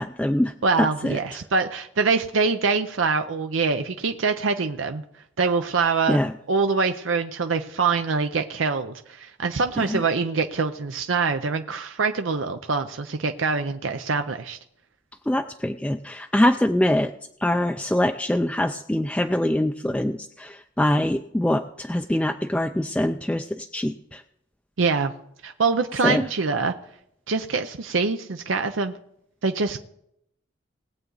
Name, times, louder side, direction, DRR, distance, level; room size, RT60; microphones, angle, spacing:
voice 1, 0.0-1.2 6.1-6.3 9.8-10.0 15.3-17.1 17.4-24.2 26.0-26.3, left 1 dB, 5° left, 5 dB, 0.3 m, -24 dB
voice 2, 0.6-5.0 5.4-6.2 6.5-14.6 24.8-25.1 25.4-26.7 27.3-29.0 29.4-29.8, right 4 dB, 90° right, 6 dB, 0.7 m, -24 dB
20.0 x 8.0 x 3.9 m, 0.74 s
head